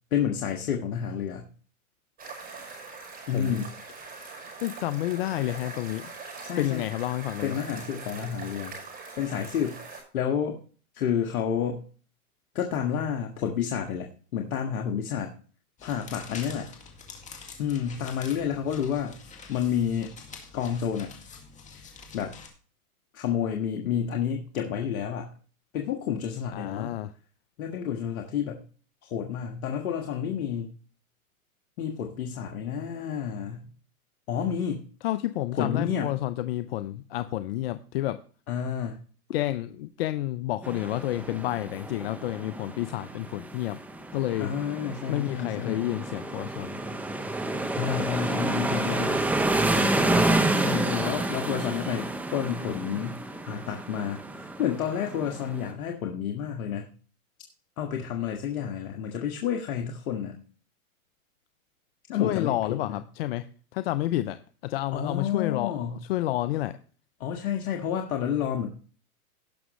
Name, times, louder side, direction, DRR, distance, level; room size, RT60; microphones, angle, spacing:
voice 1, 0.1-1.5 3.3-3.7 6.4-6.8 7.4-8.8 9.2-9.8 10.1-10.6 10.9-11.8 12.5-15.3 15.8-16.7 17.6-19.2 19.5-20.2 20.5-21.1 21.7-22.3 23.1-25.3 25.7-27.0 27.6-28.6 29.0-30.7 31.8-33.7 34.3-34.9 35.5-36.1 38.5-39.0 44.4-45.8 47.7-49.3 50.6-56.9 57.8-60.3 62.1-63.0 64.9-66.0 67.2-68.7, left 8 dB, 70° left, 2 dB, 1.7 m, -30 dB
sound 1, 2.2-10.0, right 4 dB, 20° right, 5.4 m, -42 dB
voice 2, 4.6-6.1 6.6-7.6 26.5-27.1 35.0-38.2 39.3-43.8 44.1-44.5 45.1-46.8 62.2-63.5 63.7-66.8, left 15 dB, 45° left, 12 dB, 0.6 m, -30 dB
sound 2, 15.8-22.5, left 5 dB, 15° left, 2.0 m, -46 dB
sound 3, 40.6-55.7, right 2 dB, 5° right, 0.7 m, -29 dB
17.5 x 6.2 x 3.0 m, 0.40 s
hypercardioid pair, 135°, 44 cm